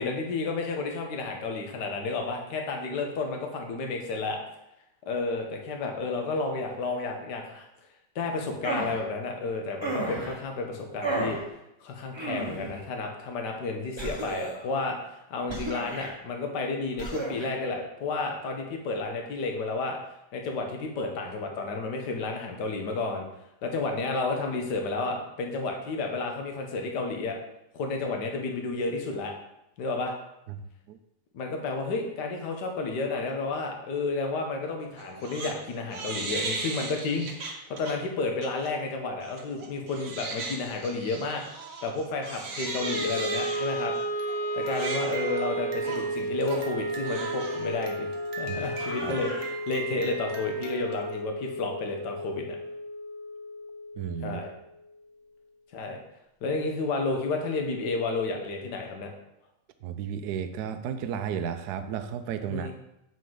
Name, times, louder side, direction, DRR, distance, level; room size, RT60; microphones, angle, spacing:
voice 1, 0.0-4.4 5.1-7.7 8.2-11.4 11.8-20.0 20.3-23.3 23.6-27.4 27.7-29.3 29.8-30.1 31.3-41.4 41.8-43.9 44.5-48.1 48.4-52.6 54.2-54.5 55.7-56.0 56.4-59.1 62.5-62.7, left 3 dB, 70° left, 2 dB, 1.6 m, -31 dB
sound 1, 8.6-9.0 9.8-10.4 11.0-11.4 12.1-12.8 14.0-14.7 15.5-16.1 17.0-17.5, right 2 dB, 20° right, 1.0 m, -32 dB
Crying sobbing, 35.0-35.5 35.9-38.0 38.4-38.7 39.2-51.2, right 3 dB, 55° right, 1.3 m, -38 dB
Wind instrument woodwind instrument, 42.8-55.0, right 1 dB, 10° left, 1.1 m, -34 dB
voice 2, 54.0-54.4 59.8-62.7, right 8 dB, 70° right, 9 dB, 1.1 m, -33 dB
7.7 x 5.2 x 3.8 m, 0.84 s
omnidirectional pair, 1.9 m